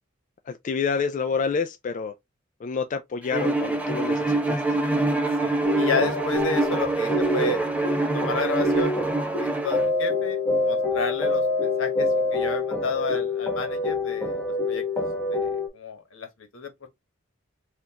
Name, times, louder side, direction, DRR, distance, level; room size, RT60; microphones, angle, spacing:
voice 1, 0.5-2.1 2.6-4.8, left 5 dB, 40° left, 0.3 m, -28 dB
Bowed string instrument, 3.3-9.9, right 2 dB, 5° right, 0.6 m, -25 dB
voice 2, 5.4-7.6 8.1-8.9 9.4-10.4 10.6-14.4 14.7-14.8 15.3-16.3 16.5-16.7, left 3 dB, 80° left, 1.1 m, -31 dB
sound 1, 5.6-15.7, left 2 dB, 10° left, 0.9 m, -26 dB
4.3 x 2.5 x 2.8 m
head